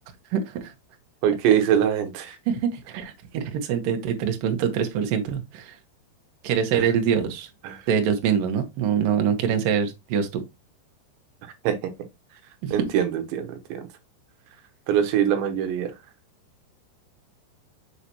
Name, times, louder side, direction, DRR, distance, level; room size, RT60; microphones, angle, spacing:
voice 1, 0.3-0.7 2.5-5.8 6.4-7.5 7.9-10.4 12.6-12.7, right 7 dB, 65° right, 2.4 m, -24 dB
voice 2, 1.2-2.4 6.7-6.8 7.6-7.8 11.6-11.8 12.7-13.9 14.9-15.9, right 9 dB, 85° right, 3.3 m, -23 dB
6.7 x 5.8 x 2.9 m
omnidirectional pair, 5.0 m